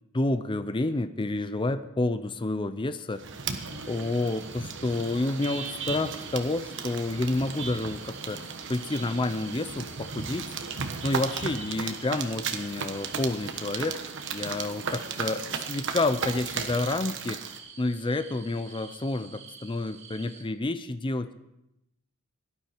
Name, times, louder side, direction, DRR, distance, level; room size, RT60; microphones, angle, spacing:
voice 1, 0.1-3.2 3.9-8.4 8.7-10.5 11.0-14.0 14.3-17.4 17.8-21.3, left 2 dB, 20° left, 11 dB, 0.5 m, -29 dB
sound 1, 3.1-17.6, right 5 dB, 55° right, 1.3 m, -35 dB
sound 2, 3.5-20.4, right 5 dB, 30° right, 1.7 m, -49 dB
17.5 x 12.0 x 4.5 m, 0.86 s
head